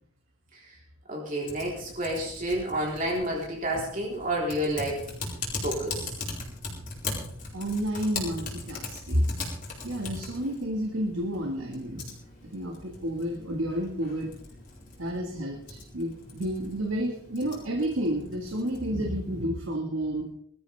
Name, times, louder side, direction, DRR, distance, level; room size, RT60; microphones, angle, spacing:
voice 1, 1.1-5.1 5.6-6.1, right 1 dB, 40° right, -2 dB, 3.8 m, -30 dB
Typing, 1.4-19.4, left 3 dB, 40° left, 4.4 m, -40 dB
voice 2, 7.5-9.3 9.8-12.1 12.4-14.3 15.0-20.3, equal, 70° right, 2 dB, 1.9 m, -30 dB
20.5 x 13.5 x 3.5 m, 0.66 s
head